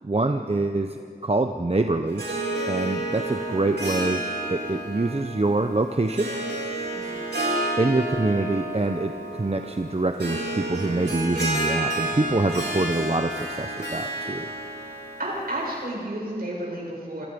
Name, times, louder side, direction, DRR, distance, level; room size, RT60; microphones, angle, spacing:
voice 1, 0.0-2.2 2.7-6.3 7.8-14.5, right 2 dB, 35° right, 6 dB, 0.9 m, -25 dB
Harp, 2.1-15.8, right 1 dB, 85° right, 4.8 m, -30 dB
voice 2, 3.6-4.0 6.9-7.2 15.2-17.2, right 1 dB, 65° right, -4 dB, 7.3 m, -32 dB
27.5 x 23.5 x 5.3 m, 2.3 s
wide cardioid pair, 55°, 17 cm